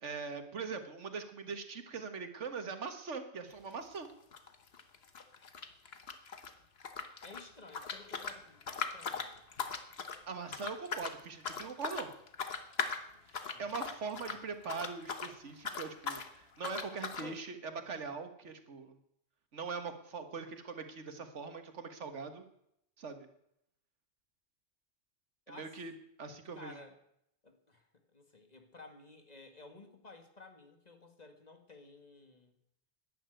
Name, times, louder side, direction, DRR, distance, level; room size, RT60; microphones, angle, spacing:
voice 1, 0.0-4.1 10.3-12.1 13.3-19.0 19.5-22.4 23.0-23.3 25.5-25.9 26.2-26.7, right 5 dB, 90° right, 8 dB, 1.8 m, -42 dB
sound 1, 3.5-3.7 3.9-6.5 6.8-15.3 15.6-16.3 16.6-17.3, left 5 dB, 60° left, 1.4 m, -40 dB
voice 2, 7.2-9.4 13.1-13.7 14.2-14.4 17.1-18.1 25.5-25.8 26.5-27.0 27.4-32.5, left 3 dB, 35° left, 5 dB, 1.9 m, -55 dB
12.0 x 10.5 x 9.0 m, 0.77 s
omnidirectional pair, 1.2 m